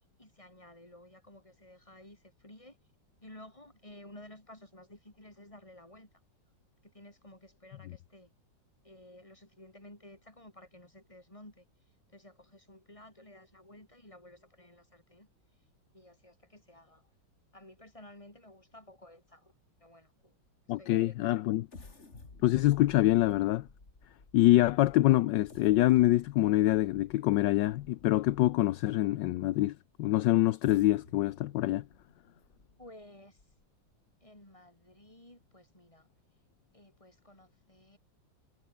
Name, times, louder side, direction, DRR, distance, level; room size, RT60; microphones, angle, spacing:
voice 1, 0.2-2.8 3.2-6.1 6.8-8.3 8.8-11.6 12.1-15.3 15.9-17.1 17.5-19.5 19.8-20.3 20.8-21.6 22.1-22.2 32.8-33.4 34.2-36.1 36.7-38.0, left 1 dB, 15° left, 5.3 m, -54 dB
voice 2, 20.7-21.7 22.4-23.7 24.3-31.8, left 16 dB, 75° left, 1.3 m, -25 dB
sound 1, 21.7-28.8 29.4-29.5 30.4-33.9 34.4-34.5 34.9-35.1, left 3 dB, 35° left, 3.1 m, -55 dB
omnidirectional pair, 2.0 m